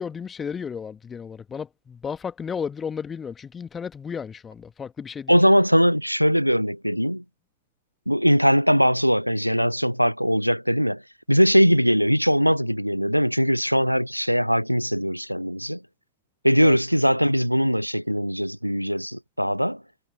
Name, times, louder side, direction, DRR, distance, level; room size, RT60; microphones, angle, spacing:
voice 1, 0.0-5.4 16.6-16.8, left 6 dB, 20° left, 1.7 m, -33 dB
voice 2, 5.3-7.2 8.1-11.0 11.3-15.8 16.4-19.8, equal, 90° right, 0.4 m, -21 dB
figure-of-eight pair, 90°, 0 cm